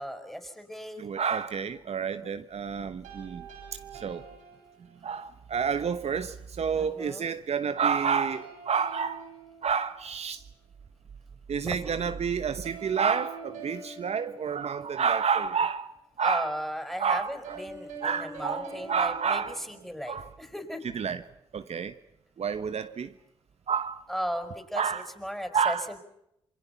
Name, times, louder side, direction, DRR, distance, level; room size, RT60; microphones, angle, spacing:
voice 1, 0.0-1.1 2.1-2.3 6.8-7.3 11.6-12.1 16.2-20.8 24.1-26.0, equal, ahead, 5.4 m, -36 dB
voice 2, 1.0-3.4 4.0-4.2 5.0-9.2 9.6-10.4 11.5-15.8 16.2-16.5 17.0-17.6 18.0-19.6 20.1-20.3 20.9-21.2 21.5-21.9 22.4-23.1 23.7-24.0 24.7-25.1 25.5-26.0, right 6 dB, 60° right, 1.1 m, -29 dB
sound 1, 3.0-5.2 7.8-10.3 12.6-15.2 17.4-20.3, right 3 dB, 90° right, 7.3 m, -45 dB
28.0 x 22.5 x 5.8 m
supercardioid pair, 45°, 12 cm